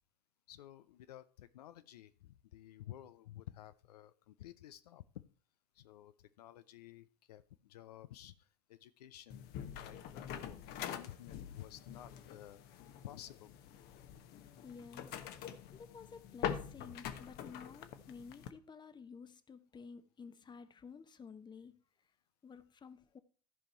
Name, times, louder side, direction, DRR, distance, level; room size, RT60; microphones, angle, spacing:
voice 1, 0.5-5.2 5.8-12.6 13.0-13.5 16.8-17.0, left 13 dB, 75° left, 0.6 m, -53 dB
sound 1, 9.3-18.5, left 9 dB, 50° left, 1.1 m, -45 dB
voice 2, 14.6-15.2 15.7-21.8 22.4-23.2, left 5 dB, 20° left, 0.9 m, -52 dB
14.0 x 5.2 x 4.4 m
figure-of-eight pair, 75°, 20 cm